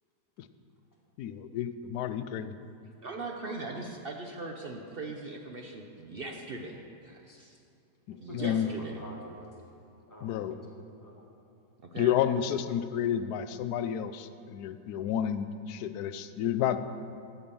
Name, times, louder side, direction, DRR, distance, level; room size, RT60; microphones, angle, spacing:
voice 1, 1.2-2.6 8.1-8.7 10.2-10.5 12.0-16.8, left 9 dB, 75° left, 11 dB, 1.1 m, -30 dB
voice 2, 3.0-7.6 8.2-9.0 11.9-12.1, right 3 dB, 55° right, 2 dB, 0.6 m, -40 dB
voice 3, 8.1-9.6 10.0-11.3, left 1 dB, 10° left, -3 dB, 1.6 m, -48 dB
8.8 x 8.4 x 6.9 m, 2.5 s
omnidirectional pair, 1.8 m